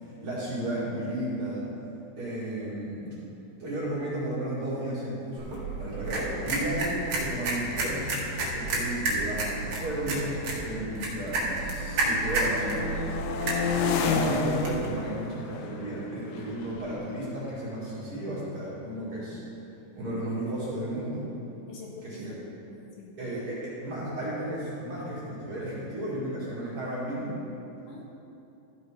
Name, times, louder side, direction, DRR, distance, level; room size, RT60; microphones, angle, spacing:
voice 1, 0.2-1.7 2.2-3.2 3.6-8.1 8.4-13.0 13.3-13.5 14.0-19.4 19.9-21.3 22.0-22.3 23.2-27.4, right 1 dB, 40° right, -9 dB, 2.7 m, -33 dB
sound 1, 5.4-14.9, right 2 dB, 60° right, 2.5 m, -31 dB
sound 2, 5.9-6.0 6.3-6.6 7.4-11.3 11.6-18.3, left 5 dB, 90° left, 2.4 m, -33 dB
voice 2, 21.7-23.2 27.9-28.0, left 3 dB, 75° left, -2 dB, 2.4 m, -46 dB
14.0 x 5.0 x 4.9 m, 2.9 s
omnidirectional pair, 4.1 m